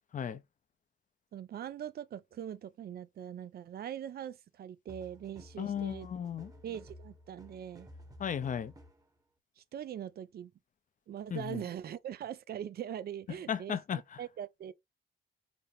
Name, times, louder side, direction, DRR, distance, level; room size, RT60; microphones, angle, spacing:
voice 1, 1.3-6.1 6.6-7.9 9.6-10.5 11.1-13.8 14.2-14.7, right 10 dB, 50° right, 0.5 m, -42 dB
sound 1, 4.9-9.1, equal, 20° right, 1.0 m, -53 dB
voice 2, 5.6-6.5 8.2-8.7 11.3-11.6 13.5-14.2, left 8 dB, 40° left, 0.6 m, -35 dB
5.2 x 2.1 x 4.2 m
cardioid pair, 90°, 20 cm